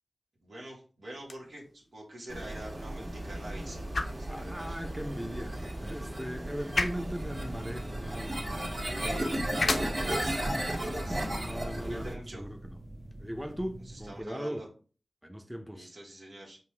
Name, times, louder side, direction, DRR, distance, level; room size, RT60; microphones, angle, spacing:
voice 1, 0.4-3.9 4.2-4.8 5.5-5.7 6.6-6.9 8.8-11.3 11.9-12.4 13.8-14.7 15.7-16.6, right 1 dB, 85° right, 1.5 m, -45 dB
sound 1, 1.1-13.2, left 3 dB, 70° left, 0.5 m, -39 dB
sound 2, 2.3-12.1, right 1 dB, 60° right, 1.8 m, -35 dB
voice 2, 4.3-8.7 11.4-12.8 13.2-14.7 15.2-15.9, equal, 5° right, 0.6 m, -39 dB
sound 3, 7.2-14.2, right 1 dB, 40° right, 0.8 m, -45 dB
5.4 x 2.5 x 3.2 m
cardioid pair, 40°, 0 cm